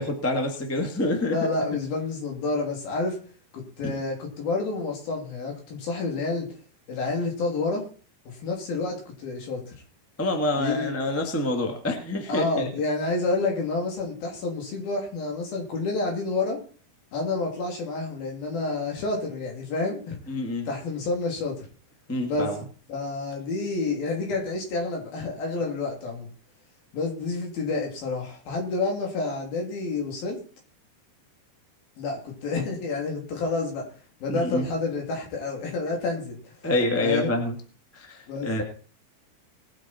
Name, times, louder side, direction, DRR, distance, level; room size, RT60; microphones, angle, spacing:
voice 1, 0.0-1.3 3.8-3.9 10.2-12.7 20.3-20.7 22.1-22.6 34.3-34.7 36.6-37.5 37.9-38.6, left 1 dB, 10° left, 3 dB, 0.6 m, -27 dB
voice 2, 1.3-3.2 3.5-6.5 6.9-7.9 8.3-9.7 10.6-10.9 12.3-16.6 17.1-20.2 20.7-21.7 22.2-22.5 22.9-26.3 26.9-30.4 32.0-33.9 34.2-36.6 37.0-37.3 38.3-38.5, left 3 dB, 65° left, 0 dB, 4.8 m, -29 dB
20.0 x 8.2 x 4.4 m, 0.41 s
omnidirectional pair, 4.6 m